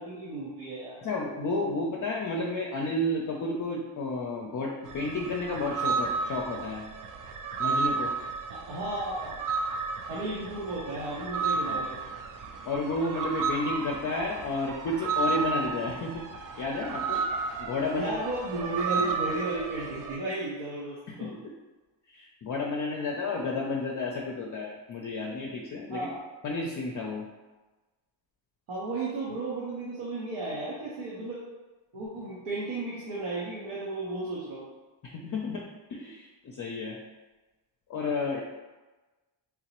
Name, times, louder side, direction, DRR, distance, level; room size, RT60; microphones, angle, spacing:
voice 1, 0.0-1.1 8.5-9.4 10.1-12.0 17.9-21.3 25.9-26.1 28.7-31.4 31.9-34.7, right 2 dB, 85° right, -7 dB, 1.0 m, -34 dB
voice 2, 1.0-6.9 7.6-8.1 11.5-11.8 12.7-16.2 16.6-17.2 17.6-18.1 18.9-19.1 21.1-21.4 22.1-26.1 26.4-27.3 35.0-35.6 35.9-37.0 37.9-38.4, left 2 dB, 40° left, -1 dB, 0.5 m, -31 dB
sound 1, 4.8-20.2, right 4 dB, 45° right, 0.4 m, -32 dB
3.7 x 2.8 x 3.0 m, 1.2 s
cardioid pair, 80°, 48 cm